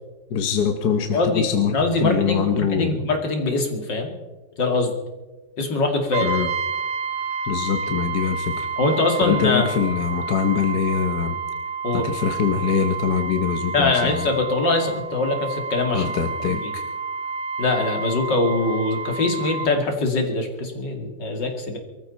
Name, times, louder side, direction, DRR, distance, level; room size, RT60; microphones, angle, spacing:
voice 1, 0.3-3.0 6.2-6.5 7.5-8.7 9.2-11.4 11.9-14.3 15.9-16.8, left 7 dB, 65° left, 6 dB, 1.5 m, -23 dB
voice 2, 1.1-1.4 1.7-4.1 4.6-4.9 5.6-6.3 8.8-9.7 11.8-12.1 13.7-16.1 16.5-16.7 17.6-21.8, left 2 dB, 80° left, 4 dB, 3.0 m, -23 dB
Brass instrument, 6.1-19.7, right 4 dB, 55° right, 1.7 m, -29 dB
23.5 x 14.5 x 4.1 m, 1.2 s
omnidirectional pair, 1.9 m